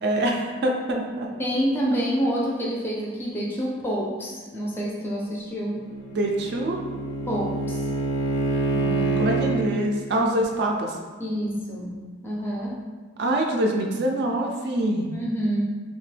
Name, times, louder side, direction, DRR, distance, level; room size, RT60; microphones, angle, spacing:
voice 1, 0.0-1.3 6.1-6.8 8.7-11.0 13.2-15.1, right 1 dB, 55° right, 1 dB, 0.3 m, -25 dB
voice 2, 1.4-5.8 7.2-7.8 11.2-11.9 12.2-12.8 15.1-15.6, equal, 10° left, -4 dB, 0.4 m, -27 dB
Bowed string instrument, 5.6-9.7, right 3 dB, 75° left, 0.4 m, -26 dB
2.8 x 2.1 x 3.2 m, 1.5 s
head